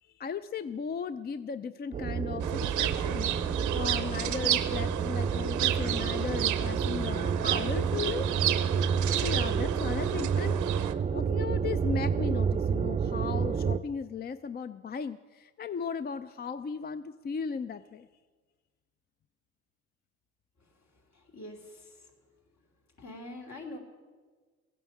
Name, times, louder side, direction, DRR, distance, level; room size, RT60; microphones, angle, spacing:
voice 1, 0.0-8.3 9.2-18.1, left 6 dB, 35° left, 12 dB, 0.4 m, -37 dB
sound 1, 1.9-13.8, right 6 dB, 25° right, 0.4 m, -29 dB
sound 2, 2.4-10.9, right 12 dB, 85° right, 0.7 m, -32 dB
voice 2, 21.1-22.1 23.0-23.8, left 1 dB, 65° left, 2 dB, 2.8 m, -44 dB
15.0 x 9.2 x 7.2 m, 1.5 s
cardioid pair, 90°, 30 cm